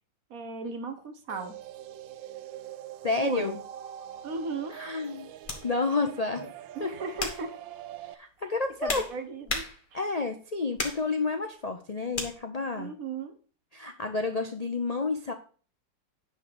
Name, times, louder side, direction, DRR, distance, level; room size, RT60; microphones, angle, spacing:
voice 1, 0.3-1.6 3.2-3.6 4.2-4.8 6.7-7.6 8.8-9.7 9.9-10.0 12.8-13.3, right 4 dB, 55° right, 9 dB, 1.4 m, -35 dB
sound 1, 1.3-8.1, right 11 dB, 85° right, 1.4 m, -44 dB
voice 2, 3.0-3.6 4.7-5.3 5.6-6.5 6.8-6.9 8.2-9.0 9.9-12.9 13.7-15.3, left 3 dB, 70° left, 5 dB, 0.3 m, -30 dB
sound 2, 4.1-4.3 5.4-5.7 6.3-6.6 7.2-7.5 8.4-10.1 10.8-11.1 12.1-12.3, left 2 dB, 30° left, 1.6 m, -35 dB
10.0 x 4.0 x 6.8 m, 0.40 s
omnidirectional pair, 2.0 m